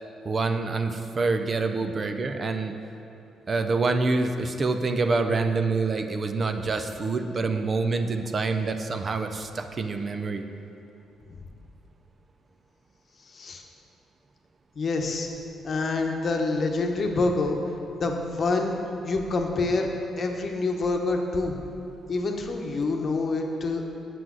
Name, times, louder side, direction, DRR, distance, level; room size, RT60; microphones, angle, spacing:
voice 1, 0.2-2.7 3.5-10.4, right 3 dB, 40° right, 7 dB, 0.5 m, -26 dB
voice 2, 13.3-13.6 14.7-15.3 15.6-17.6 18.0-18.8 19.0-19.9 20.2-21.6 22.1-23.9, left 3 dB, 45° left, 2 dB, 0.9 m, -26 dB
7.6 x 5.9 x 6.2 m, 2.7 s
cardioid pair, 90°, 0 cm